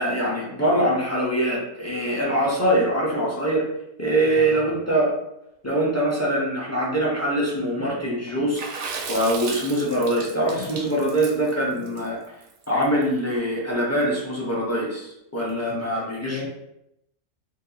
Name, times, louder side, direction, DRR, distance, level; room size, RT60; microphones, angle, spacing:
voice 1, 0.0-3.6 4.0-5.1 5.6-12.2 12.7-16.5, right 1 dB, 15° left, -5 dB, 0.5 m, -23 dB
voice 2, 4.3-4.6 15.7-16.5, left 4 dB, 75° left, -2 dB, 1.0 m, -37 dB
Water / Splash splatter, 8.6-13.0, right 5 dB, 75° right, 1.0 m, -35 dB
2.8 x 2.5 x 3.9 m, 0.82 s
omnidirectional pair, 1.4 m